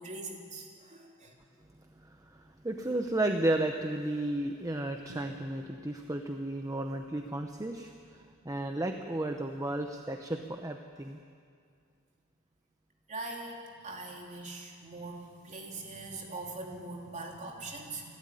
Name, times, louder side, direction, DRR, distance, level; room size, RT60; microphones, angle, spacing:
voice 1, 0.0-1.3 13.1-18.1, right 2 dB, 35° right, 0 dB, 3.2 m, -42 dB
voice 2, 2.0-11.2, right 1 dB, 15° right, 5 dB, 0.8 m, -33 dB
Drum, 5.1-6.8, right 1 dB, 85° right, 5.8 m, -54 dB
29.0 x 12.5 x 9.9 m, 2.3 s
head